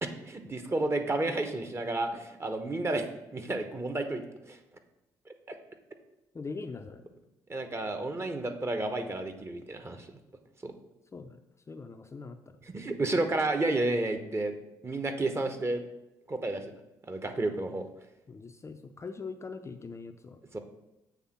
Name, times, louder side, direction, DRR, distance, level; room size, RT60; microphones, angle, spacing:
voice 1, 0.0-4.6 5.5-5.6 7.5-10.1 10.6-10.7 12.6-14.5 14.8-15.8 16.3-16.6 17.1-17.9 20.5-20.6, right 2 dB, 25° right, 7 dB, 1.0 m, -31 dB
voice 2, 6.3-7.0 11.1-11.3 11.7-12.4 18.3-20.4, left 4 dB, 25° left, 6 dB, 0.5 m, -41 dB
7.1 x 3.5 x 5.9 m, 0.92 s
hypercardioid pair, 50°, 10 cm